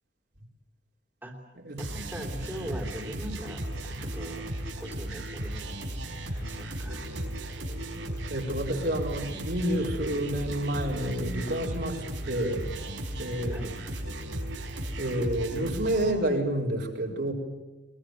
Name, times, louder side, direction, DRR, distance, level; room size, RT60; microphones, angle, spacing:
voice 1, 1.8-4.5 4.8-5.7 6.4-7.0 13.5-13.7, equal, 10° right, 0 dB, 3.4 m, -41 dB
sound 1, 1.8-16.1, right 1 dB, 90° right, 5.1 m, -35 dB
voice 2, 8.3-12.7 13.2-13.6 15.0-17.3, right 1 dB, 60° right, 0 dB, 4.6 m, -29 dB
23.0 x 22.5 x 9.1 m, 1.2 s
head